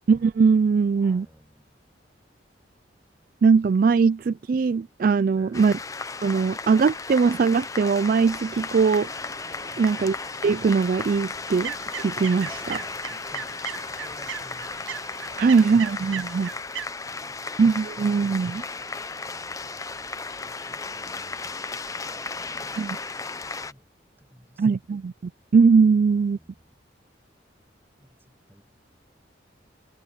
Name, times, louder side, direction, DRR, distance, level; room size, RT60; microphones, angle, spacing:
voice 1, 0.1-1.2 3.4-5.7 6.2-9.1 9.8-10.1 10.4-11.7 12.0-12.8 15.4-16.5 17.6-18.6 22.8-23.0 24.6-26.4, right 5 dB, 45° right, 0.3 m, -20 dB
voice 2, 0.8-1.7 5.3-5.7 9.7-10.2 12.5-14.8 17.0-17.7 19.2-20.1 20.4-22.9 23.3-23.9 24.2-25.1 26.0-26.8 28.0-28.6, equal, 10° right, 6.6 m, -54 dB
sound 1, 5.5-23.7, left 4 dB, 15° left, 0.6 m, -35 dB
sound 2, 8.2-16.6, right 4 dB, 65° right, 1.8 m, -50 dB
sound 3, 11.5-16.9, right 9 dB, 85° right, 0.7 m, -37 dB
head